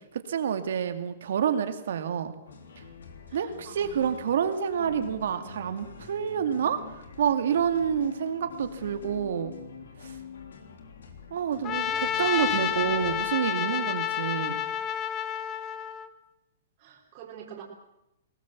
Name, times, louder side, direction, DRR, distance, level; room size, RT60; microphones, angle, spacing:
voice 1, 0.3-2.3 3.3-6.8 7.2-9.5 11.3-14.6, right 8 dB, 70° right, 9 dB, 2.3 m, -28 dB
sound 1, 2.5-13.4, left 5 dB, 85° left, 3.2 m, -46 dB
voice 2, 3.3-4.3 11.5-12.0 16.8-17.6, right 7 dB, 40° right, -2 dB, 4.1 m, -48 dB
Trumpet, 11.6-16.1, left 10 dB, 25° left, 1.3 m, -29 dB
21.0 x 18.5 x 7.4 m, 0.88 s
hypercardioid pair, 145°, 0 cm